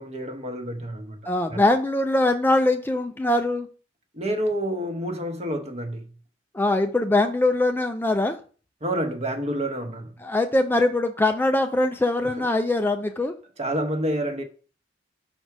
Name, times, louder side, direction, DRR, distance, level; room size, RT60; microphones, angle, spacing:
voice 1, 0.0-1.6 4.1-6.1 8.8-10.1 12.2-12.5 13.6-14.5, right 1 dB, 35° right, 1.0 m, -29 dB
voice 2, 1.3-3.7 6.5-8.4 10.2-13.3, left 2 dB, 10° left, 0.4 m, -22 dB
6.0 x 4.1 x 4.6 m
head